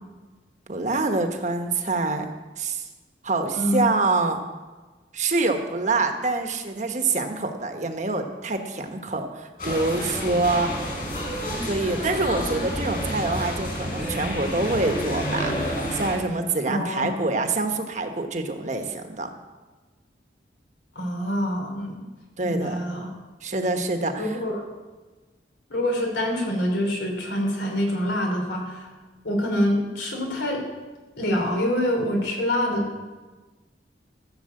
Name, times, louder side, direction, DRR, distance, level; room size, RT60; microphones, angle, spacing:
voice 1, 0.7-2.3 2.6-2.8 3.2-4.4 5.1-10.7 11.6-19.3 22.4-22.8 23.4-24.4, right 3 dB, 40° right, 5 dB, 1.2 m, -26 dB
voice 2, 3.5-3.9 16.6-17.1 20.9-22.0 22.4-23.1 24.2-24.6 25.7-28.9 29.2-30.6 31.2-32.9, equal, 80° left, 1 dB, 3.2 m, -25 dB
sound 1, 9.6-16.2, equal, 50° left, 4.8 m, -29 dB
15.0 x 7.0 x 7.8 m, 1.3 s
head